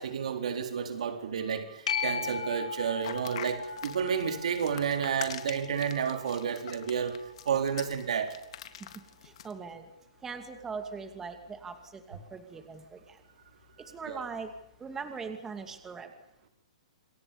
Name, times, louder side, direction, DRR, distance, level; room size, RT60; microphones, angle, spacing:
voice 1, 0.0-7.2 7.5-8.3 14.1-14.3, right 7 dB, 75° right, 6 dB, 4.1 m, -31 dB
sound 1, 1.9-9.0 14.6-14.7, left 5 dB, 85° left, 5.6 m, -39 dB
sound 2, 3.0-9.5, left 10 dB, 60° left, 3.6 m, -44 dB
voice 2, 9.4-9.8 10.2-13.0 13.9-14.5 14.8-16.1, right 5 dB, 10° right, 7 dB, 2.5 m, -40 dB
29.0 x 23.0 x 7.1 m, 0.79 s
hypercardioid pair, 155°, 4 cm